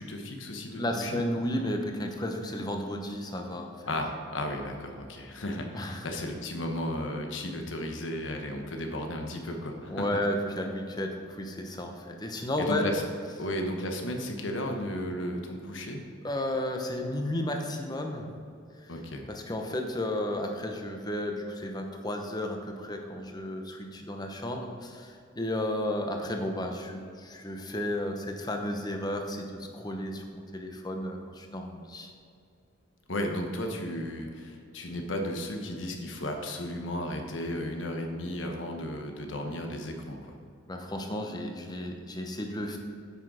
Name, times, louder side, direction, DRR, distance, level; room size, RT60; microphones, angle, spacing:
voice 1, 0.0-1.2 3.9-10.1 12.6-13.0 13.4-16.0 18.9-19.2 33.1-40.4, left 1 dB, 65° left, 3 dB, 1.2 m, -34 dB
voice 2, 0.7-3.7 5.7-6.1 9.9-12.9 16.2-18.3 19.3-32.1 40.7-42.8, left 1 dB, 20° left, 3 dB, 0.9 m, -33 dB
9.0 x 6.3 x 4.9 m, 2.4 s
head